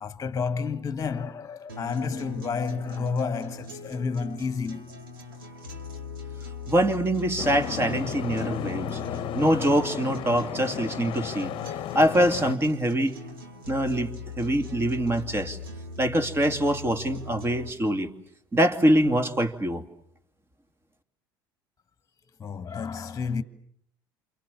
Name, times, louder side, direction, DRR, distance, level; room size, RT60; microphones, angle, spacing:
voice 1, 0.0-5.0 8.3-9.4 22.4-23.4, left 5 dB, 25° left, 1.5 m, -31 dB
sound 1, 1.7-17.7, left 3 dB, 80° right, 2.7 m, -41 dB
voice 2, 6.7-9.0 9.3-11.6 11.9-13.2 13.7-15.6 16.0-18.1 18.5-19.8, right 1 dB, 20° right, 2.5 m, -24 dB
Boat Water vehicle, 7.4-12.5, left 11 dB, 45° left, 1.1 m, -34 dB
29.0 x 28.5 x 7.1 m
figure-of-eight pair, 65°, 12 cm